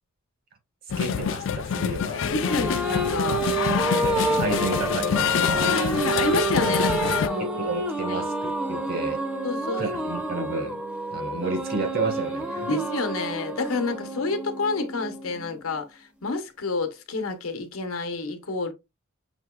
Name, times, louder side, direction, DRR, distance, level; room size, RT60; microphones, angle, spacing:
sound 1, 0.9-7.3, left 7 dB, 60° left, 0.3 m, -26 dB
voice 1, 1.0-2.7 3.7-6.0 7.4-9.2 9.7-10.8 11.1-12.8, right 2 dB, 45° right, 1.1 m, -32 dB
sound 2, 2.2-15.8, right 2 dB, 5° right, 0.5 m, -29 dB
voice 2, 2.3-3.5 5.6-7.5 8.1-8.2 9.4-9.9 10.4-10.5 12.7-18.7, left 3 dB, 90° left, 0.9 m, -29 dB
5.8 x 2.8 x 2.3 m
head